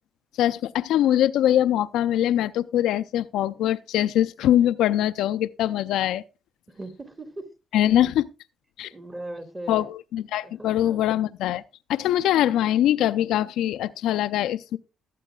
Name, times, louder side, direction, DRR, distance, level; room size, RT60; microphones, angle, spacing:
voice 1, 0.4-6.2 7.7-8.2 8.8-8.9 9.7-11.6 11.9-14.8, left 12 dB, 85° left, 0.4 m, -23 dB
voice 2, 6.7-7.5 7.9-8.1 8.9-9.9 10.4-11.0, right 1 dB, 20° right, 2.0 m, -39 dB
20.0 x 8.3 x 2.3 m
cardioid pair, 90°, 0 cm